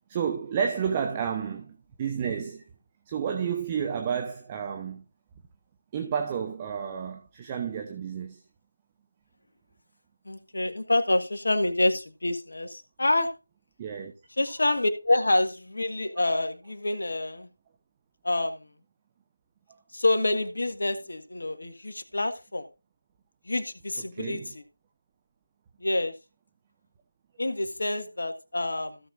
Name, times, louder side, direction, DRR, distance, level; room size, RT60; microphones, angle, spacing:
voice 1, 0.1-2.6 3.1-5.0 5.9-8.4 13.8-14.1 24.1-24.5, right 7 dB, 15° right, 0.8 m, -31 dB
voice 2, 10.2-13.3 14.4-17.5 18.2-18.7 19.9-22.7 23.4-24.6 25.8-26.1 27.4-29.0, left 2 dB, 60° left, 1.5 m, -27 dB
16.0 x 6.4 x 2.6 m
figure-of-eight pair, 165°, 0 cm